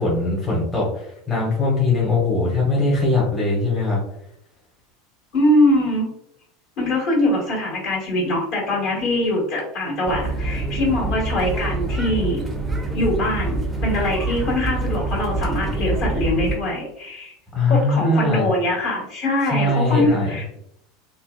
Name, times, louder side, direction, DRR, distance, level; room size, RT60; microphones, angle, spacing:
voice 1, 0.0-4.0 17.5-18.5 19.5-20.3, left 2 dB, 20° left, -5 dB, 0.9 m, -21 dB
voice 2, 5.3-6.1 6.8-12.4 12.9-17.3 17.7-20.6, left 1 dB, 55° left, -5 dB, 1.4 m, -22 dB
sound 1, 10.1-16.6, right 2 dB, 15° right, 0.4 m, -25 dB
2.7 x 2.1 x 2.2 m, 0.75 s
figure-of-eight pair, 80°, 0 cm